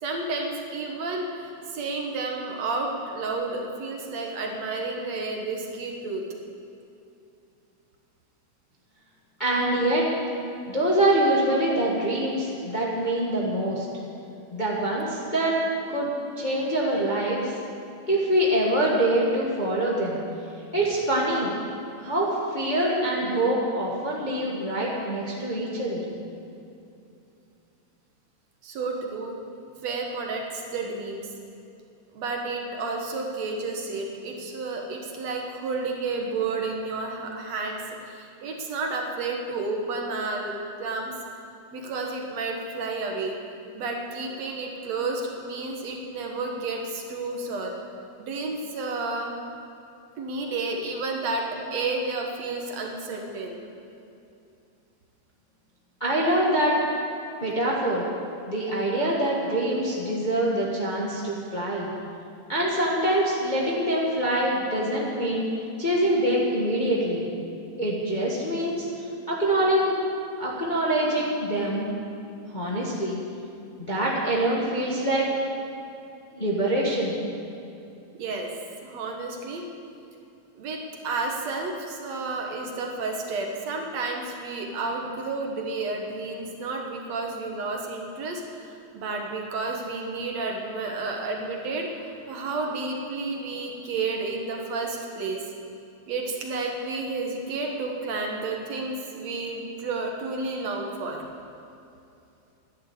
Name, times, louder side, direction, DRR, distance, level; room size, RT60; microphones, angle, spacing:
voice 1, 0.0-6.2 28.6-29.4 29.8-31.3 32.1-41.1 41.7-43.3 43.7-47.8 48.2-49.4 50.2-53.7 78.1-78.5 78.8-79.6 80.6-95.4 96.1-101.2, right 3 dB, 65° right, 1 dB, 2.5 m, -31 dB
voice 2, 9.4-10.1 10.7-13.8 14.5-15.6 15.9-17.5 18.1-20.2 20.7-21.5 22.0-26.1 56.0-56.8 57.4-58.0 58.5-61.9 62.5-65.4 65.8-67.3 67.8-68.9 69.3-70.0 70.4-71.8 72.5-73.2 73.8-75.3 76.3-77.2, right 1 dB, 20° left, -4 dB, 1.4 m, -25 dB
11.5 x 10.0 x 8.3 m, 2.7 s
omnidirectional pair, 3.4 m